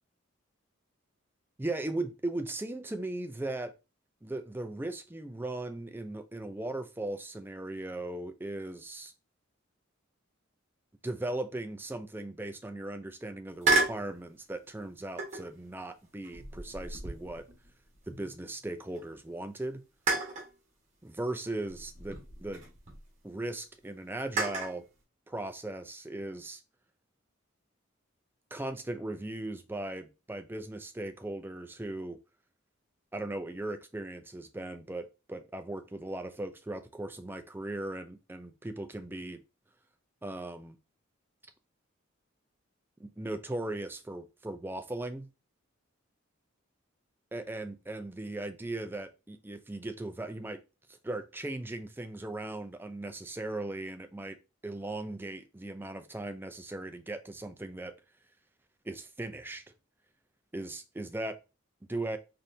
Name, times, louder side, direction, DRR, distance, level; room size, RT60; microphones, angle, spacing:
voice 1, 1.6-3.7 4.2-9.1 11.0-17.5 18.1-19.8 21.0-22.6 23.2-24.8 25.3-26.6 28.5-32.2 33.1-39.4 40.2-40.8 43.0-45.3 47.3-50.6 51.0-54.4 54.6-57.9 58.8-59.6 60.5-61.4 61.9-62.2, right 2 dB, 10° right, 0.4 m, -38 dB
sound 1, 13.6-14.1 15.2-15.6 16.2-18.6 19.0-19.1 20.1-20.5 21.7-23.0 24.4-24.8, right 3 dB, 35° right, 1.3 m, -32 dB
4.1 x 3.2 x 2.7 m
head